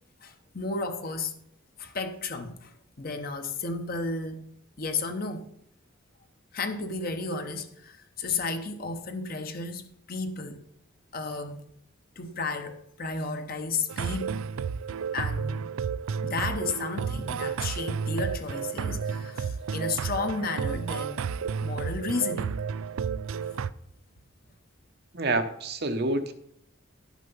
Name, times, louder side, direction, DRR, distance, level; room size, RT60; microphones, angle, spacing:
voice 1, 0.2-1.4 1.8-4.5 4.8-5.5 6.5-10.6 11.1-11.6 12.2-14.4 15.1-15.7 16.2-21.3 21.6-22.6, left 3 dB, 45° left, 0.9 m, -33 dB
sound 1, 13.9-23.7, right 6 dB, 70° right, 0.4 m, -32 dB
voice 2, 25.1-26.3, right 2 dB, 50° right, 0.8 m, -27 dB
11.5 x 6.2 x 5.5 m
head